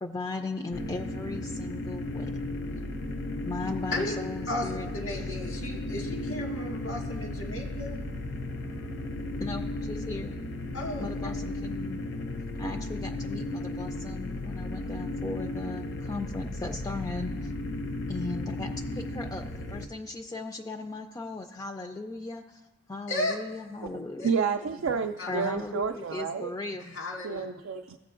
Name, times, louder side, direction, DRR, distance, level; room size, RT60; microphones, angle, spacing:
voice 1, 0.0-2.3 3.4-4.9 5.1-5.4 9.4-10.4 11.0-12.0 12.6-17.5 18.1-19.4 19.7-22.6 22.9-24.3 25.3-27.0, left 3 dB, 20° left, 5 dB, 0.3 m, -37 dB
sound 1, 0.7-19.9, left 2 dB, 60° left, 0.6 m, -35 dB
voice 2, 4.5-8.0 10.7-11.1 23.1-23.4 24.2-24.3 25.2-25.6 26.9-27.5, left 1 dB, 90° left, 0 dB, 1.9 m, -34 dB
voice 3, 24.2-26.5 27.2-28.0, right 6 dB, 80° right, 5 dB, 0.4 m, -30 dB
16.0 x 7.5 x 2.5 m, 1.1 s
head